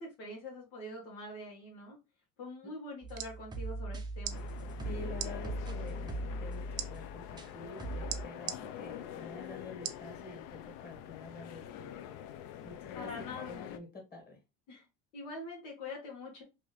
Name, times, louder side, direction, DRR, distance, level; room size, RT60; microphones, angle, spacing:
voice 1, 0.0-2.0 2.4-4.4 12.9-13.6 14.7-14.8 15.1-16.4, left 2 dB, 85° left, -2 dB, 1.3 m, -44 dB
sound 1, 2.9-3.3 4.2-4.4 5.1-5.3 6.8-6.9 8.1-8.6 9.8-10.1 10.6-10.7, right 12 dB, 65° right, 0.6 m, -38 dB
sound 2, 3.0-7.5 7.8-8.2, right 1 dB, 10° right, 0.4 m, -40 dB
sound 3, 4.3-13.8, left 10 dB, 60° left, 0.5 m, -45 dB
voice 2, 4.8-11.9 12.6-14.4, left 2 dB, 25° left, 2 dB, 1.7 m, -48 dB
3.0 x 2.6 x 3.1 m, 0.25 s
supercardioid pair, 105°, 38 cm